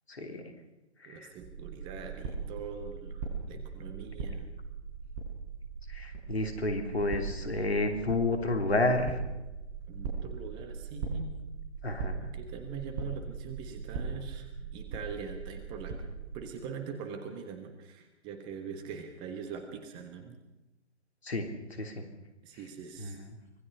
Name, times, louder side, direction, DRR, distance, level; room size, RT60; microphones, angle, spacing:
voice 1, 0.1-0.4 1.0-1.3 5.9-9.2 11.8-12.1 21.2-22.0 23.0-23.3, left 2 dB, 65° left, 5 dB, 3.3 m, -31 dB
voice 2, 1.1-4.4 9.9-11.3 12.2-15.9 16.3-20.4 22.4-23.2, right 6 dB, 15° right, 6 dB, 1.3 m, -42 dB
sound 1, 1.4-16.4, right 5 dB, 30° right, 4.8 m, -40 dB
25.0 x 18.5 x 5.6 m, 1.0 s
figure-of-eight pair, 135°, 34 cm